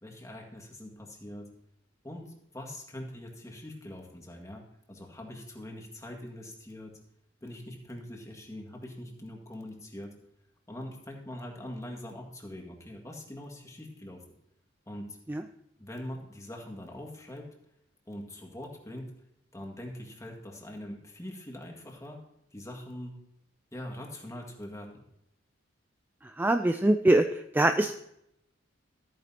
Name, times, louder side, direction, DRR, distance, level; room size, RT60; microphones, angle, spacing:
voice 1, 0.0-1.5 2.0-6.9 7.4-10.1 10.7-14.2 14.9-15.2 15.8-17.5 18.1-19.2 19.5-22.2 22.5-23.2 23.7-25.0, left 1 dB, 15° left, 1 dB, 1.8 m, -43 dB
voice 2, 26.4-27.9, right 1 dB, 10° right, 8 dB, 0.3 m, -23 dB
13.5 x 9.3 x 2.8 m, 0.79 s
head